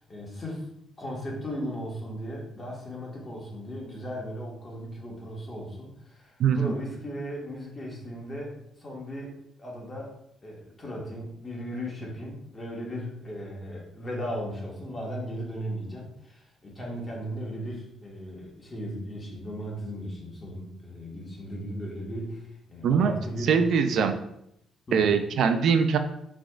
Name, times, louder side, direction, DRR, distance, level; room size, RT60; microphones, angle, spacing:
voice 1, 0.1-0.7 1.0-10.1 10.4-23.6 23.9-24.1 24.9-25.1, equal, 30° left, -3 dB, 1.7 m, -37 dB
voice 2, 6.4-6.7 22.8-23.2 23.5-24.1 24.9-26.0, right 6 dB, 70° right, 8 dB, 0.4 m, -22 dB
6.0 x 3.4 x 2.5 m, 0.76 s
cardioid pair, 90°, 0 cm